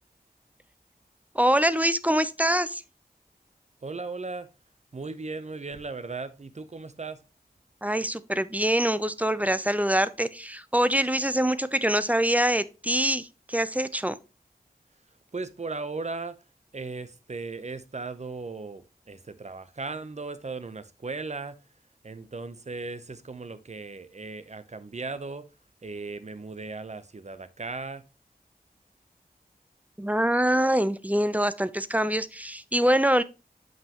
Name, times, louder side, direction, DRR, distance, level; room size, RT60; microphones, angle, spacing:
voice 1, 1.3-2.8 7.8-14.2 30.0-33.2, right 1 dB, 10° right, 0.5 m, -24 dB
voice 2, 3.8-4.5 4.9-7.2 15.3-16.4 16.7-21.6 22.0-25.5 25.8-28.0, right 3 dB, 45° right, 0.8 m, -37 dB
7.6 x 5.8 x 3.0 m
wide cardioid pair, 65°, 16 cm